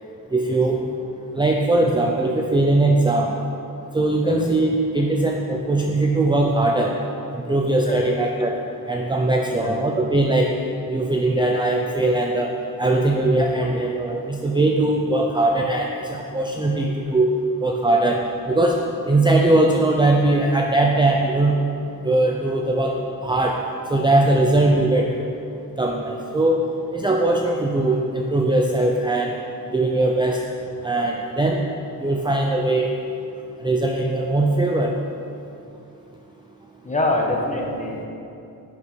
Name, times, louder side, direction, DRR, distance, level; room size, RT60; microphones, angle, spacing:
voice 1, 0.3-0.8 1.3-3.3 3.9-6.9 7.3-8.5 8.9-10.5 10.9-12.5 12.8-17.3 17.6-18.2 18.5-18.8 19.1-21.6 22.0-22.9 23.2-23.6 23.9-25.1 25.8-26.6 26.9-29.3 29.7-30.4 30.8-31.6 32.0-32.9 33.6-34.9, right 2 dB, 10° right, 0 dB, 0.6 m, -20 dB
voice 2, 36.8-38.0, left 1 dB, 20° left, -1 dB, 1.5 m, -25 dB
11.0 x 9.6 x 5.2 m, 2.7 s
wide cardioid pair, 150°, 38 cm